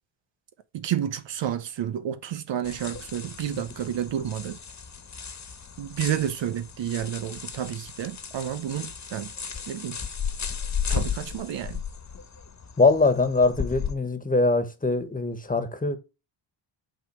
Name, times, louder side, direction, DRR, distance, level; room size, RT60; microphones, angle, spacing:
voice 1, 0.7-4.6 5.8-9.3 9.7-10.0 10.9-11.8, right 10 dB, 65° right, 0.9 m, -30 dB
sound 1, 2.6-13.9, left 7 dB, 35° left, 1.5 m, -35 dB
voice 2, 12.8-16.0, left 3 dB, 15° left, 1.5 m, -22 dB
8.9 x 3.6 x 6.3 m
cardioid pair, 105°, 48 cm